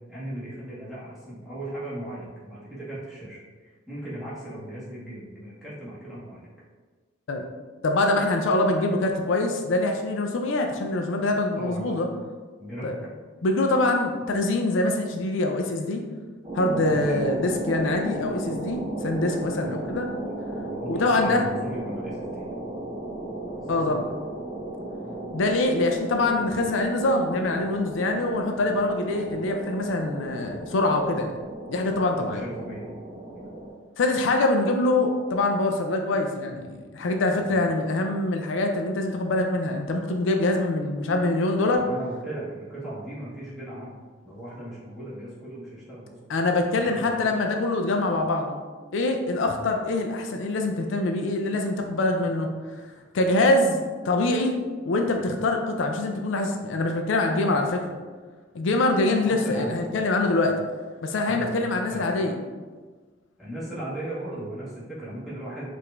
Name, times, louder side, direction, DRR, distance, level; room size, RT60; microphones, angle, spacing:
voice 1, 0.1-6.5 11.5-12.0 12.6-12.9 16.9-17.2 19.6-19.9 20.7-22.5 23.7-23.8 32.1-32.9 33.3-33.6 37.4-37.6 41.8-43.9 44.2-46.2 46.6-47.3 59.3-59.8 61.2-61.5 61.9-62.1 63.4-65.7, right 1 dB, ahead, -10 dB, 1.4 m, -37 dB
voice 2, 7.8-12.1 12.8-12.9 13.4-16.0 16.5-20.1 20.9-21.4 23.7-24.1 25.3-31.3 31.7-32.4 34.0-41.8 46.3-48.6 48.9-52.5 53.1-54.6 54.9-58.0 58.5-60.5 61.0-62.3, left 2 dB, 75° left, 3 dB, 0.4 m, -24 dB
sound 1, 16.4-33.7, right 1 dB, 25° right, 0.9 m, -35 dB
4.7 x 2.6 x 3.3 m, 1.4 s
head